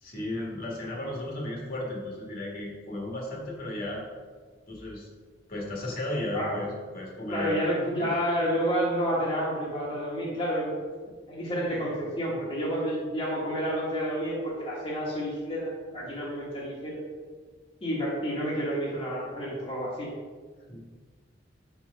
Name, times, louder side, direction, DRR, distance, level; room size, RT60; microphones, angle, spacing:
voice 1, 0.0-4.0 4.7-5.1 5.5-7.7 8.0-8.1 20.7-21.0, left 1 dB, 55° left, -3 dB, 1.7 m, -34 dB
voice 2, 7.3-10.7 11.3-17.0 17.8-20.1, equal, 30° left, -7 dB, 1.3 m, -29 dB
5.8 x 4.6 x 4.7 m, 1.5 s
head